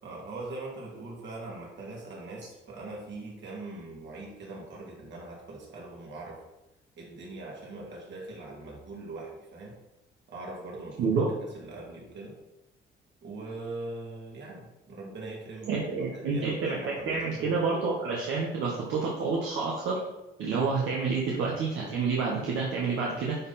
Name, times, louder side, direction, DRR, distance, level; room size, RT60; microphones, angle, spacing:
voice 1, 0.0-6.4 7.0-9.7 10.3-11.2 11.5-12.4 13.2-17.6, right 2 dB, 65° right, -3 dB, 2.7 m, -41 dB
voice 2, 15.7-20.0 20.4-23.4, right 4 dB, 80° right, -4 dB, 1.4 m, -28 dB
9.8 x 3.9 x 4.3 m, 0.95 s
cardioid pair, 90°, 20 cm